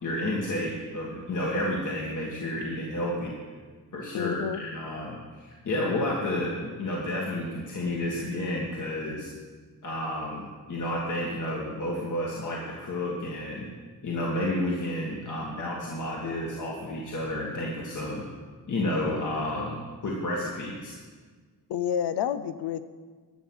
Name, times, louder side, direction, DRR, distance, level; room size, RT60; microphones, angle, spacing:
voice 1, 0.0-3.4 3.9-9.3 9.8-13.7 14.0-18.2 18.7-20.9, left 1 dB, 50° left, -3 dB, 1.8 m, -31 dB
voice 2, 4.1-4.6 21.7-22.8, left 9 dB, 80° left, 13 dB, 0.7 m, -29 dB
11.5 x 7.2 x 6.3 m, 1.5 s
cardioid pair, 125°, 40 cm